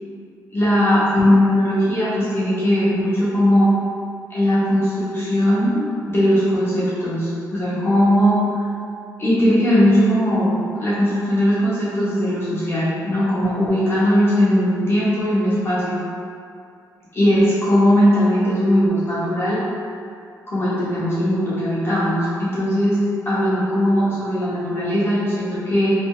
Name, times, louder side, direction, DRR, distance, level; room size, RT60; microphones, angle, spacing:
voice 1, 0.5-3.7 4.3-8.5 9.2-10.5 10.8-16.0 17.1-19.6 20.5-25.9, equal, 35° left, -10 dB, 0.8 m, -19 dB
3.1 x 2.0 x 3.6 m, 2.4 s
cardioid pair, 90°, 7 cm